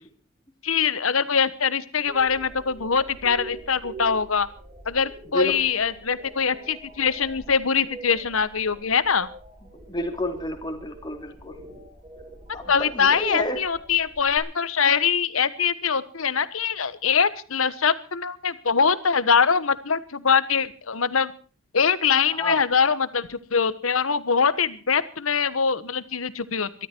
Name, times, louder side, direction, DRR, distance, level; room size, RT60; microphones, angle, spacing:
voice 1, 0.6-4.5 4.8-9.3 12.7-21.3 21.7-26.9, left 6 dB, 80° left, 15 dB, 1.2 m, -23 dB
sound 1, 2.1-14.4, right 2 dB, 25° right, 5.7 m, -44 dB
voice 2, 9.9-11.6 12.5-13.6 22.3-22.6, left 1 dB, 20° left, 4 dB, 3.4 m, -30 dB
22.5 x 13.5 x 4.5 m, 0.38 s
head